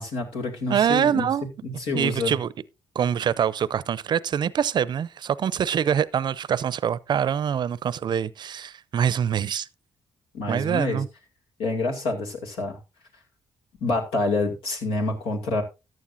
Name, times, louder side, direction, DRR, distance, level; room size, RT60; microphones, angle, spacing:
voice 1, 0.0-1.3 1.6-2.4 10.3-11.0 11.6-12.8 13.8-15.6, left 2 dB, 80° left, 2.3 m, -27 dB
voice 2, 0.7-1.5 1.9-2.5 2.9-9.7 10.5-11.1, right 8 dB, 55° right, 0.6 m, -24 dB
14.0 x 9.4 x 2.6 m
hypercardioid pair, 50°, 9 cm